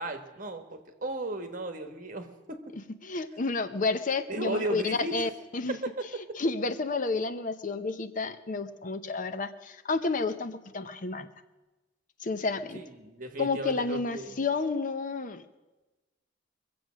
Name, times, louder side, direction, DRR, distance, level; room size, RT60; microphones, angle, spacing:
voice 1, 0.0-2.6 4.3-5.3 12.7-14.4, right 2 dB, 45° right, 6 dB, 1.5 m, -35 dB
voice 2, 2.7-5.8 6.4-11.3 12.2-12.8 13.4-15.4, left 3 dB, 45° left, 10 dB, 0.7 m, -31 dB
23.0 x 7.8 x 6.3 m, 1.1 s
head